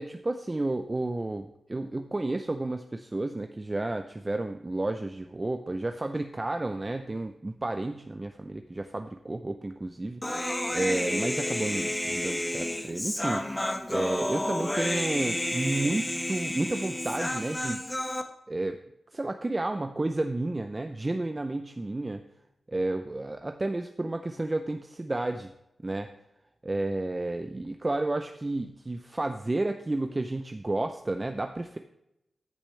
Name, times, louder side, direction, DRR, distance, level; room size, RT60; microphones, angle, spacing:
voice 1, 0.0-10.2 10.7-17.8 18.5-18.8 19.1-22.2 22.7-25.5 25.8-26.1 26.6-31.8, right 2 dB, 25° right, 6 dB, 0.6 m, -31 dB
Human voice, 10.2-18.2, left 1 dB, 15° left, 1.0 m, -31 dB
14.0 x 6.7 x 3.3 m, 0.83 s
wide cardioid pair, 80°, 0 cm